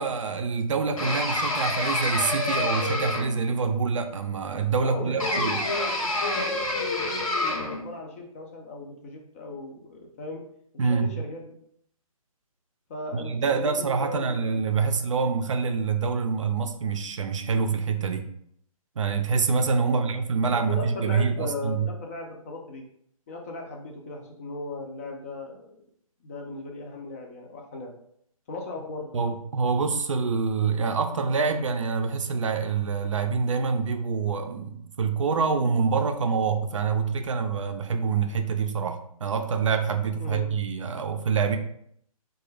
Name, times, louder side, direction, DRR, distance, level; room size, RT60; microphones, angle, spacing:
voice 1, 0.0-5.6 10.8-11.1 13.1-18.3 19.0-21.9 29.1-41.6, right 5 dB, 60° right, 6 dB, 0.4 m, -26 dB
sound 1, 1.0-3.5 5.2-7.8, left 2 dB, 70° left, 0.9 m, -28 dB
voice 2, 4.8-10.4 10.7-11.5 12.9-14.7 19.8-20.1 20.4-22.9 23.3-25.7 26.2-28.0 28.5-29.2 40.2-40.5, left 2 dB, 25° left, 1 dB, 0.4 m, -37 dB
3.7 x 2.3 x 3.2 m, 0.68 s
figure-of-eight pair, 140°, 19 cm